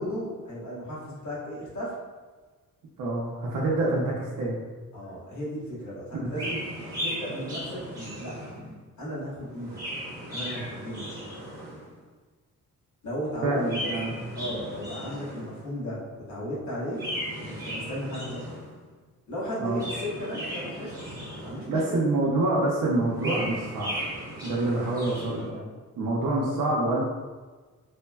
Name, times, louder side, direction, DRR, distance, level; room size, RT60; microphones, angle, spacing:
voice 1, 0.0-2.0 4.9-8.4 9.0-9.8 10.3-11.1 13.0-13.6 14.3-17.1 17.4-18.5 19.3-21.1 21.4-22.0, equal, 65° left, -8 dB, 1.2 m, -35 dB
voice 2, 3.0-4.6 6.1-6.3 13.4-14.1 19.6-19.8 21.7-23.9 24.4-25.7 26.0-27.0, right 2 dB, 85° right, -5 dB, 0.6 m, -26 dB
Chirp tweet, 6.3-8.8 9.5-11.9 13.4-15.6 16.9-18.8 19.6-21.9 22.9-25.5, equal, 10° right, 0.7 m, -36 dB
3.1 x 2.1 x 2.2 m, 1.3 s
wide cardioid pair, 175°, 32 cm